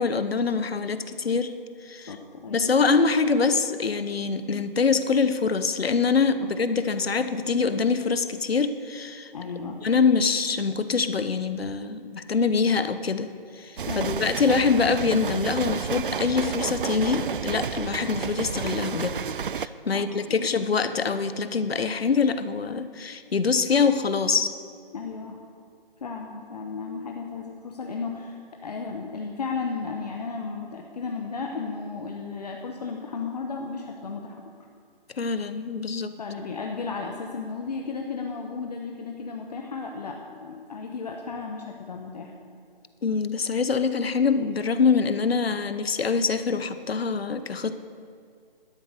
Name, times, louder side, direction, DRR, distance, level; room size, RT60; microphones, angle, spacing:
voice 1, 0.0-1.5 1.9-2.2 2.5-9.3 9.8-13.3 13.6-19.1 19.5-24.5 35.2-36.1 43.0-47.8, left 5 dB, 80° left, 11 dB, 1.0 m, -24 dB
voice 2, 2.1-2.8 9.3-9.8 13.9-14.3 19.9-20.0 20.4-20.8 22.8-23.1 24.9-25.4 26.0-34.4 36.2-42.3, left 4 dB, 40° left, 1 dB, 1.1 m, -34 dB
sound 1, 13.8-19.7, right 7 dB, 60° right, 0.5 m, -30 dB
12.0 x 9.7 x 6.7 m, 2.2 s
figure-of-eight pair, 160°, 30 cm